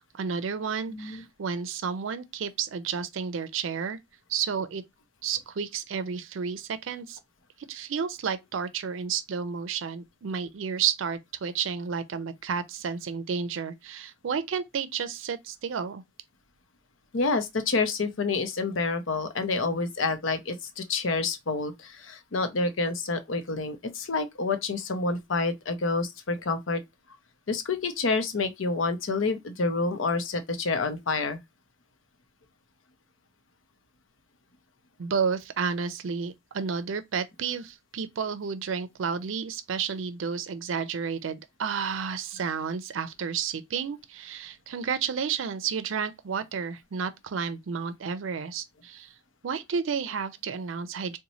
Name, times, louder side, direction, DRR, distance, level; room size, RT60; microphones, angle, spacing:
voice 1, 0.0-4.0 4.3-4.8 5.2-7.2 7.7-16.0 35.0-49.1 49.4-51.2, right 6 dB, 85° right, 0.4 m, -31 dB
voice 2, 0.9-1.2 17.1-26.8 27.5-31.4, left 3 dB, 85° left, 0.7 m, -28 dB
3.0 x 2.2 x 3.9 m
head